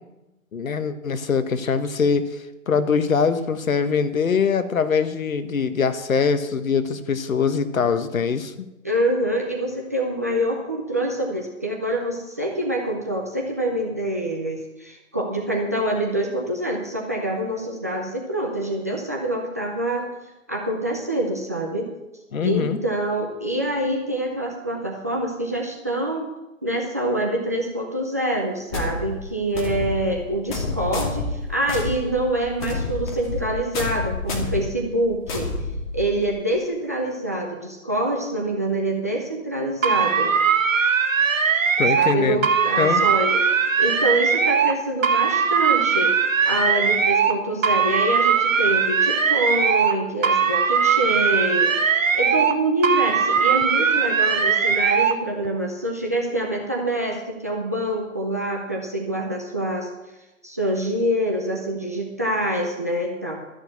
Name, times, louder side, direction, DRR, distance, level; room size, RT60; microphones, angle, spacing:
voice 1, 0.5-8.7 22.3-22.8 41.8-42.5 42.8-43.0, left 6 dB, 75° left, 10 dB, 1.4 m, -23 dB
voice 2, 8.8-20.1 20.5-21.9 22.4-26.3 26.6-35.5 35.9-40.4 42.0-43.4 43.8-46.1 46.4-59.9 60.4-63.3, right 1 dB, 10° right, -1 dB, 0.5 m, -26 dB
sound 1, 28.7-36.4, left 3 dB, 35° left, 2.4 m, -29 dB
sound 2, 39.8-42.1 42.4-44.7 45.0-47.3 47.6-50.0 50.2-52.6 52.8-55.2, right 6 dB, 70° right, 1.8 m, -20 dB
13.0 x 6.6 x 8.3 m, 1.0 s
hypercardioid pair, 155°, 41 cm